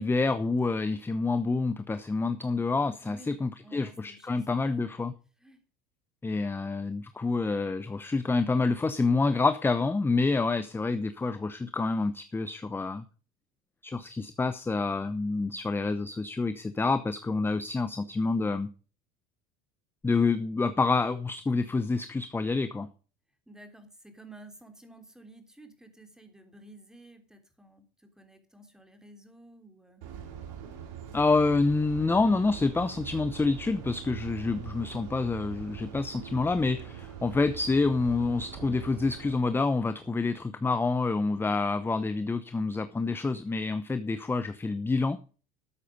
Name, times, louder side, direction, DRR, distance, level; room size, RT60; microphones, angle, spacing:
voice 1, 0.0-5.1 6.2-13.0 13.8-18.7 20.0-22.9 31.1-45.2, left 3 dB, 15° left, 12 dB, 0.9 m, -27 dB
voice 2, 3.0-3.3 3.6-5.0 5.4-5.6 23.5-30.0, right 2 dB, 5° right, 6 dB, 3.2 m, -52 dB
sound 1, 30.0-39.3, right 8 dB, 75° right, 3.6 m, -42 dB
13.0 x 8.4 x 5.3 m, 0.37 s
supercardioid pair, 95°, 17 cm